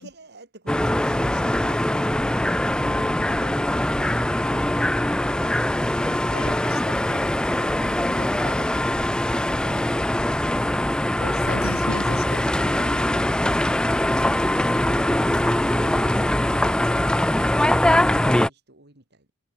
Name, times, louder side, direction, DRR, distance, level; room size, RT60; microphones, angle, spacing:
voice 1, 0.0-7.0 14.3-19.3, right 1 dB, 50° right, 3.8 m, -47 dB
sound 1, 0.7-18.5, left 1 dB, 5° left, 0.3 m, -22 dB
voice 2, 7.6-7.9 8.2-8.7 11.2-12.5 12.8-13.0, left 3 dB, 75° left, 1.6 m, -36 dB
head